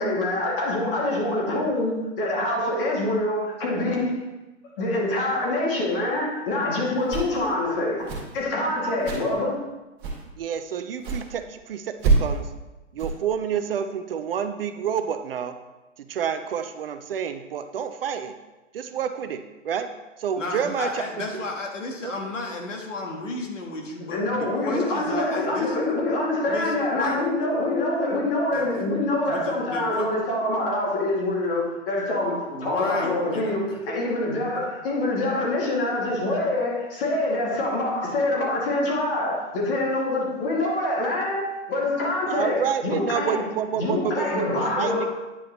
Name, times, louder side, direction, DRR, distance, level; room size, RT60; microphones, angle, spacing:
voice 1, 0.0-4.2 4.8-9.7 24.1-43.4 43.8-45.1, left 2 dB, 45° left, -3 dB, 2.3 m, -25 dB
sound 1, 7.0-7.5 8.0-8.4 9.0-9.4 10.0-10.2 11.0-11.2 12.0-12.4 13.0-13.1, right 4 dB, 35° right, 2.2 m, -25 dB
voice 2, 10.4-12.5 12.9-15.6 16.0-18.4 18.7-21.1 21.3-21.4 22.0-22.2 42.3-45.1, right 8 dB, 50° right, 9 dB, 0.5 m, -29 dB
voice 3, 20.4-25.8 26.5-27.2 28.5-28.9 29.3-30.0 32.5-33.5, left 2 dB, 75° left, 1 dB, 1.4 m, -33 dB
9.6 x 4.8 x 3.0 m, 1.1 s
figure-of-eight pair, 120°, 38 cm